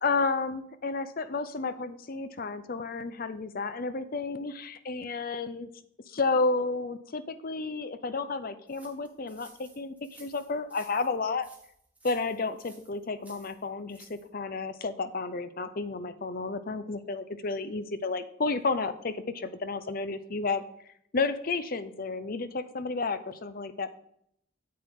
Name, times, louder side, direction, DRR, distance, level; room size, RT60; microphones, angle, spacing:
voice 1, 0.0-5.7 6.1-11.5 12.0-20.6 21.1-23.9, left 3 dB, 45° left, 12 dB, 0.6 m, -31 dB
sound 1, 8.7-14.3, right 2 dB, 5° right, 1.5 m, -56 dB
8.5 x 8.0 x 3.7 m, 0.70 s
head